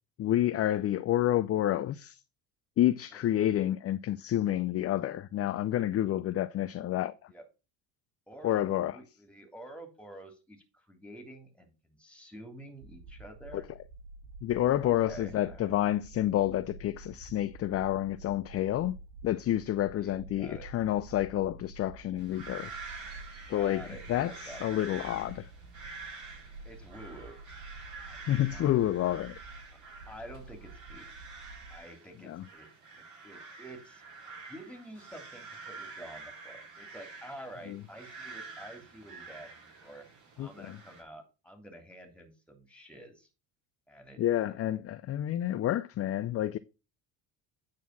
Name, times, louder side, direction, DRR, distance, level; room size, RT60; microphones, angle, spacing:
voice 1, 0.2-2.2 2.8-7.3 8.4-9.0 13.5-13.6 14.4-19.0 19.2-22.8 23.5-25.5 28.3-29.4 32.2-32.5 37.7-37.8 40.4-40.8 44.2-46.6, left 13 dB, 35° left, 0.5 m, -29 dB
voice 2, 8.3-13.7 14.8-15.7 20.0-20.7 23.5-24.7 26.6-27.4 28.1-28.7 30.1-31.1 31.7-32.7 32.9-34.0 34.5-39.5 39.8-40.0 40.4-43.3 43.9-44.2, right 1 dB, 5° left, 3.0 m, -49 dB
sound 1, 12.8-31.8, right 3 dB, 80° right, 2.5 m, -49 dB
sound 2, 22.2-41.0, right 4 dB, 45° right, 6.1 m, -48 dB
9.3 x 4.2 x 6.0 m
hypercardioid pair, 75°, 42 cm